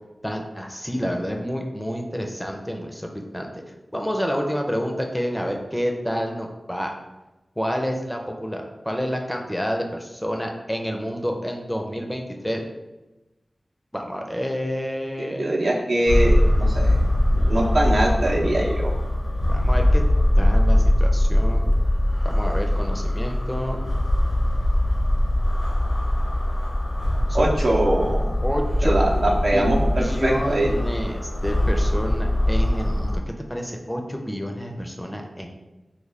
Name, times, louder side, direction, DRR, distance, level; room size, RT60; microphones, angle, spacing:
voice 1, 0.2-3.1 3.3-3.6 3.9-6.9 7.6-12.6 13.9-15.5 19.5-20.0 20.4-21.8 22.2-23.8 27.3-27.5 28.4-29.0 29.5-29.6 30.0-33.2 33.5-35.5, equal, 5° left, 2 dB, 0.4 m, -29 dB
voice 2, 15.2-17.0 17.3-18.9 27.3-28.3 28.8-30.7, right 1 dB, 80° right, -3 dB, 0.6 m, -22 dB
sound 1, 16.1-33.2, left 1 dB, 60° left, 0.6 m, -21 dB
3.6 x 2.2 x 3.2 m, 1.0 s
wide cardioid pair, 65°, 0 cm